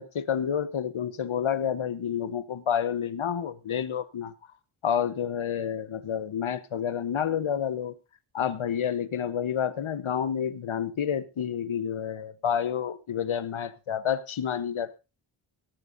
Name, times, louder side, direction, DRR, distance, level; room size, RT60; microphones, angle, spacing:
voice 1, 0.0-4.3 4.8-7.9 8.3-15.0, left 8 dB, 70° left, 1.1 m, -29 dB
17.5 x 14.0 x 2.6 m
wide cardioid pair, 120°, 50 cm